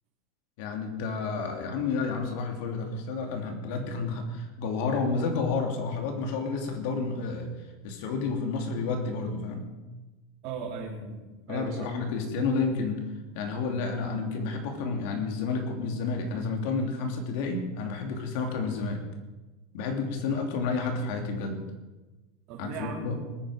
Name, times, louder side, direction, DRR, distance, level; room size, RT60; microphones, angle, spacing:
voice 1, 0.6-7.5 7.8-9.7 11.5-13.0 13.3-19.0 19.7-21.6 22.6-23.2, left 4 dB, 60° left, 3 dB, 2.9 m, -30 dB
voice 2, 10.4-11.9 22.5-23.2, right 4 dB, 45° right, -3 dB, 3.3 m, -37 dB
20.5 x 9.4 x 5.1 m, 1.2 s
supercardioid pair, 145°, 0 cm